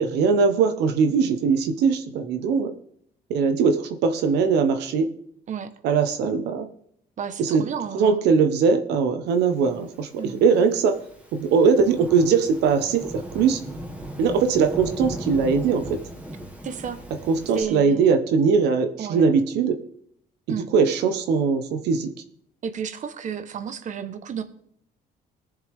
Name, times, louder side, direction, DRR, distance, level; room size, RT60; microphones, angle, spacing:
voice 1, 0.0-2.7 3.3-5.1 5.8-6.7 7.4-7.6 7.9-10.1 10.4-11.0 11.3-13.6 14.2-15.8 17.3-19.8 20.7-22.1, right 5 dB, 80° right, 7 dB, 1.2 m, -20 dB
voice 2, 7.2-8.2 10.2-10.4 16.6-17.0 17.5-18.1 19.0-19.2 20.5-20.7 22.6-24.4, right 7 dB, 45° right, 9 dB, 1.2 m, -32 dB
Thunderstorm / Rain, 9.9-17.6, equal, 10° right, 1.9 m, -37 dB
21.5 x 7.2 x 3.6 m, 0.68 s
cardioid pair, 110°, 17 cm